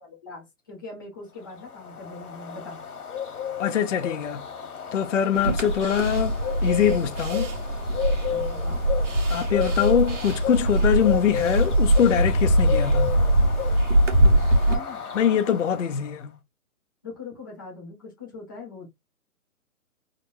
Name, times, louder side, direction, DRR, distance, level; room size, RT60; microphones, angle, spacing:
voice 1, 0.0-2.8 5.4-5.6 8.3-8.8 14.6-15.0 15.7-15.8 17.0-18.9, left 3 dB, 15° left, 0.8 m, -41 dB
sound 1, 1.5-16.1, left 8 dB, 75° left, 1.4 m, -33 dB
voice 2, 3.6-4.5 4.9-7.5 9.3-13.2 15.1-16.3, left 8 dB, 55° left, 0.5 m, -23 dB
sound 2, 5.3-14.8, right 1 dB, 55° right, 1.5 m, -22 dB
3.8 x 2.1 x 4.2 m
hypercardioid pair, 175°, 45 cm